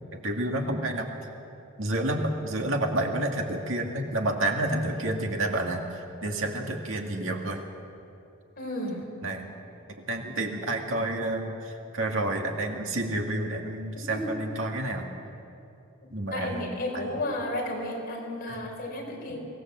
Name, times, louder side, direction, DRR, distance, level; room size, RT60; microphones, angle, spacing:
voice 1, 0.1-1.1 1.8-7.6 9.2-9.5 10.1-15.1 16.1-17.0 18.5-18.7, right 1 dB, 60° right, 2 dB, 2.2 m, -29 dB
voice 2, 8.6-9.1 14.1-14.3 16.3-19.4, left 1 dB, 40° left, -1 dB, 4.9 m, -32 dB
24.5 x 18.5 x 7.6 m, 2.7 s
head